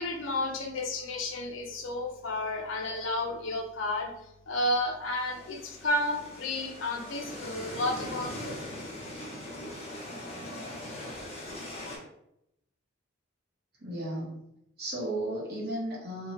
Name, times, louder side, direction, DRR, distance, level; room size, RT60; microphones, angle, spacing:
voice 1, 0.0-4.1 4.5-8.6, left 1 dB, 70° left, 3 dB, 0.5 m, -32 dB
sound 1, 5.1-12.0, left 1 dB, 30° left, 0.7 m, -41 dB
voice 2, 13.8-14.3 14.8-16.3, right 1 dB, 50° right, -4 dB, 0.9 m, -34 dB
2.7 x 2.3 x 3.0 m, 0.79 s
head